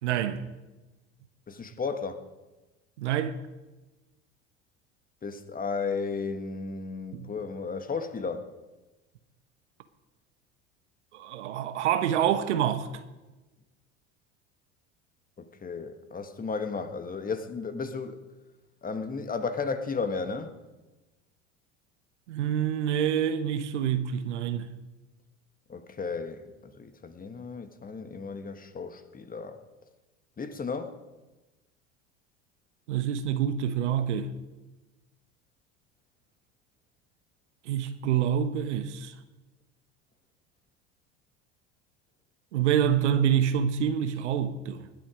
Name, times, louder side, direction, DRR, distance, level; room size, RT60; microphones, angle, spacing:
voice 1, 0.0-0.5 3.0-3.4 7.1-7.3 11.1-12.9 22.3-24.7 32.9-34.3 37.7-39.1 42.5-44.9, right 9 dB, 75° right, 1.2 m, -27 dB
voice 2, 1.5-2.2 5.2-8.5 15.4-18.2 18.8-20.6 25.7-26.5 26.7-29.6 30.4-30.9, left 4 dB, 25° left, 1.6 m, -34 dB
19.5 x 10.5 x 5.1 m
hypercardioid pair, 75°, 35 cm